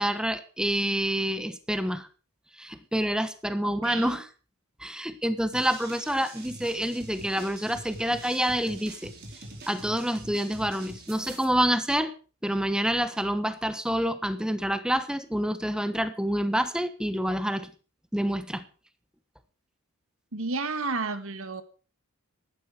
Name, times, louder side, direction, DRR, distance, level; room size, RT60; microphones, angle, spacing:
voice 1, 0.0-2.1 2.6-4.3 4.8-9.1 9.7-12.1 12.4-17.7 18.1-18.6, equal, 5° right, 11 dB, 1.2 m, -27 dB
voice 2, 3.6-4.2 20.3-21.6, right 3 dB, 65° right, 11 dB, 1.7 m, -32 dB
sound 1, 5.5-11.4, right 2 dB, 45° right, 4.6 m, -44 dB
16.0 x 12.0 x 4.9 m, 0.36 s
head